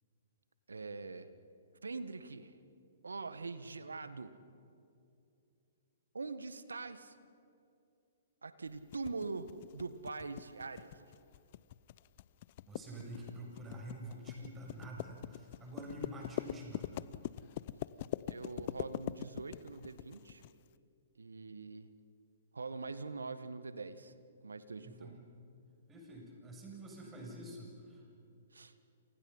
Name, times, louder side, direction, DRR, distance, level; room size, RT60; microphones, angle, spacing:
voice 1, 0.7-1.3 1.8-2.6 3.0-4.3 6.1-7.2 8.4-11.1 18.3-20.4 21.2-21.9 22.5-24.1 24.4-25.2 28.5-28.7, right 3 dB, 85° right, 12 dB, 1.7 m, -43 dB
sound 1, 8.9-20.5, left 14 dB, 45° left, 0.7 m, -42 dB
voice 2, 12.7-17.1 24.8-25.2 25.9-28.0, right 1 dB, 15° right, 0 dB, 7.5 m, -47 dB
29.5 x 28.5 x 5.7 m, 2.6 s
hypercardioid pair, 125°, 0 cm